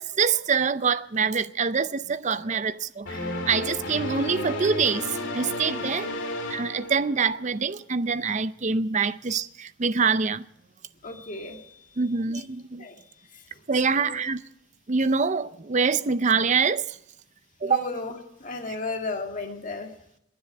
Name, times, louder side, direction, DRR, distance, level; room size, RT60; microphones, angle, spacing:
voice 1, 0.0-6.1 6.5-10.4 12.0-12.9 13.7-14.4 14.9-17.0 17.6-17.8, right 5 dB, 35° right, 0.5 m, -25 dB
sound 1, 3.1-7.5, left 1 dB, 55° left, 2.7 m, -33 dB
voice 2, 5.7-6.2 9.0-9.1 11.0-12.0 12.3-12.4 12.8-13.4 13.8-14.2 17.6-19.9, left 3 dB, 35° left, 2.1 m, -35 dB
21.0 x 7.8 x 6.6 m
head